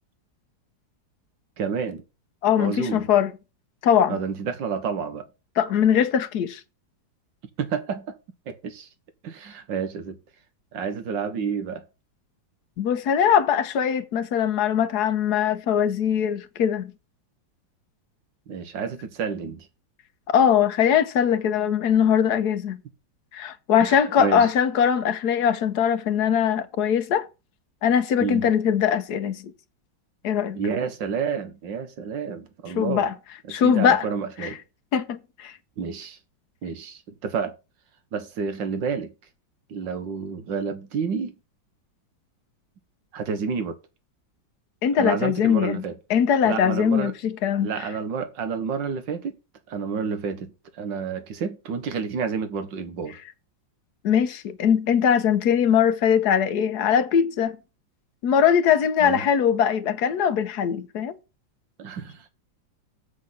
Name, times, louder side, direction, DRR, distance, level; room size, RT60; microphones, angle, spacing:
voice 1, 1.6-2.0 2.6-3.1 4.1-5.3 7.6-8.2 8.5-8.9 9.2-10.2 10.7-11.8 18.5-19.7 23.8-24.5 28.2-28.5 30.5-33.1 33.4-34.6 35.8-36.2 36.6-37.5 38.1-39.1 39.7-41.4 43.1-43.8 45.0-46.0 46.4-47.1 47.6-49.4 49.7-53.2 59.0-59.3 61.8-62.3, right 6 dB, 70° right, 2.0 m, -29 dB
voice 2, 2.4-3.3 3.8-4.2 5.6-6.6 12.8-16.9 20.3-22.8 23.3-27.3 27.8-29.5 30.2-30.6 32.7-33.1 33.5-34.1 34.4-34.5 34.9-35.5 44.8-45.8 46.1-47.7 54.0-57.6 58.2-61.2, left 8 dB, 60° left, 1.3 m, -21 dB
7.9 x 6.7 x 5.8 m
omnidirectional pair, 2.1 m